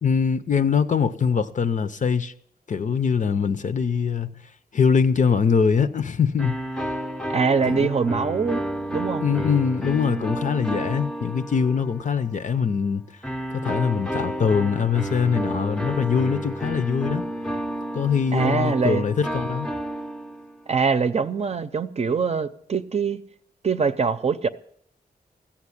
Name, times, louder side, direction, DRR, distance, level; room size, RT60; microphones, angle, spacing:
voice 1, 0.0-2.3 2.7-4.3 4.7-6.6 7.7-7.9 9.2-13.0 13.5-17.2 17.9-19.7, left 6 dB, 50° left, 0.7 m, -23 dB
sound 1, 6.4-12.2 13.2-20.6, right 1 dB, 5° left, 0.7 m, -31 dB
voice 2, 7.3-8.6 8.9-9.2 18.3-19.1 20.7-23.2 23.6-24.5, right 5 dB, 40° right, 0.7 m, -23 dB
15.5 x 7.3 x 9.8 m
wide cardioid pair, 130°, 16 cm